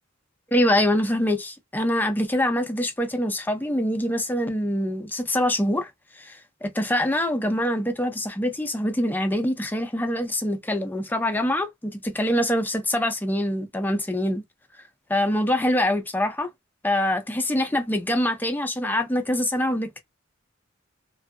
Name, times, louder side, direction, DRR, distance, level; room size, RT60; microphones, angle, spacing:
voice 1, 0.5-5.9 6.2-14.4 15.1-16.5 16.8-20.0, left 1 dB, 10° left, 0.5 m, -24 dB
2.4 x 2.3 x 2.6 m
head